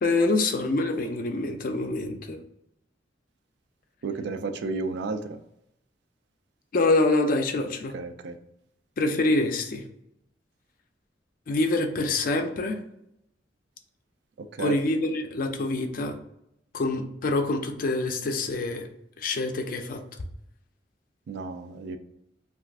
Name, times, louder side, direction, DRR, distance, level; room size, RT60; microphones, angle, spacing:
voice 1, 0.0-2.4 6.7-7.9 9.0-9.8 11.5-12.8 14.6-16.1 16.7-18.9 19.2-20.0, left 2 dB, 50° left, 5 dB, 0.4 m, -26 dB
voice 2, 4.0-5.4 7.9-8.4 14.6-14.8 21.3-22.0, right 3 dB, 65° right, 8 dB, 0.3 m, -32 dB
2.4 x 2.4 x 3.4 m, 0.79 s
head